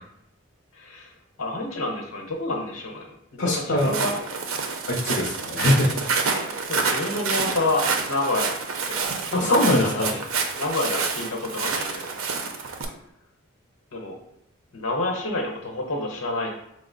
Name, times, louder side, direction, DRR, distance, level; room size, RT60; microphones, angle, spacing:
voice 1, 0.7-1.1 1.4-4.2 6.7-8.6 8.9-12.1 13.9-14.2 14.7-16.5, left 2 dB, 90° left, 1 dB, 0.9 m, -28 dB
voice 2, 3.4-4.0 4.9-5.9 9.3-10.1, left 1 dB, 65° left, -1 dB, 0.5 m, -23 dB
Walk footsteps, 3.8-12.8, right 4 dB, 80° right, 0.5 m, -28 dB
4.8 x 2.0 x 3.7 m, 0.77 s
head